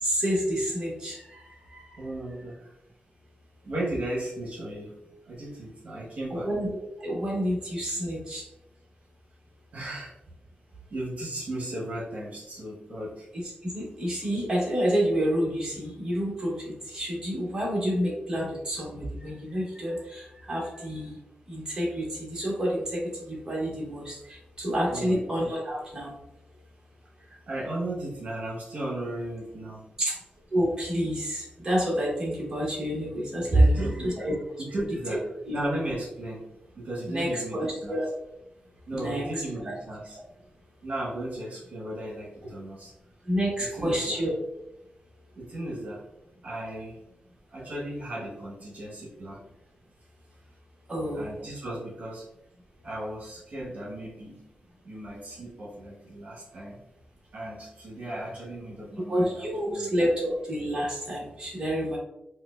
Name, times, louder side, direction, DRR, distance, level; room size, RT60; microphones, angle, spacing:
voice 1, 0.0-2.1 6.3-6.7 7.0-8.5 13.3-21.2 21.5-26.1 30.0-30.2 30.5-34.4 35.5-35.6 37.1-38.1 38.9-39.4 43.2-44.3 50.9-51.3 59.1-62.0, equal, 20° right, -5 dB, 1.2 m, -28 dB
voice 2, 2.0-2.5 3.6-5.0 5.3-6.5 9.7-10.1 10.9-13.3 24.9-25.2 27.3-29.8 33.5-34.3 34.6-35.3 35.5-36.4 36.7-38.1 38.9-40.2 40.8-42.9 43.7-44.2 45.4-46.0 46.4-46.9 47.5-49.4 51.1-52.2 52.8-54.4 54.8-56.8 57.3-59.9, right 1 dB, 50° right, -6 dB, 1.1 m, -35 dB
4.6 x 2.2 x 2.4 m, 0.85 s
wide cardioid pair, 135°, 3 cm